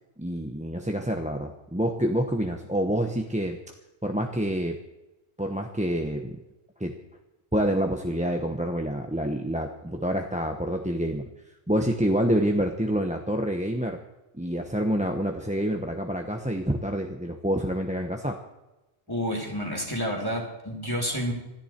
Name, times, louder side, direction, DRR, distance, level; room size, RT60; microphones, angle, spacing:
voice 1, 0.2-3.6 4.0-4.8 5.4-6.4 6.8-7.0 7.5-11.2 11.7-14.0 14.3-18.4, equal, 5° right, 3 dB, 1.0 m, -27 dB
voice 2, 19.1-21.3, equal, 20° left, 1 dB, 3.3 m, -29 dB
26.5 x 10.5 x 4.5 m, 1.0 s
omnidirectional pair, 1.1 m